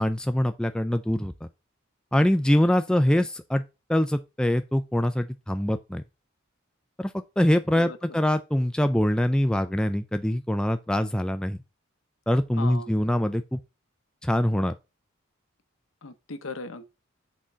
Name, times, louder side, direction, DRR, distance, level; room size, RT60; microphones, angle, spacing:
voice 1, 0.0-1.5 2.1-3.6 3.9-6.0 7.0-11.6 12.3-13.6 14.2-14.7, left 1 dB, 5° left, 0.3 m, -24 dB
voice 2, 7.7-8.2 12.6-12.9 16.0-16.8, left 3 dB, 80° left, 0.9 m, -38 dB
6.3 x 3.8 x 5.5 m
head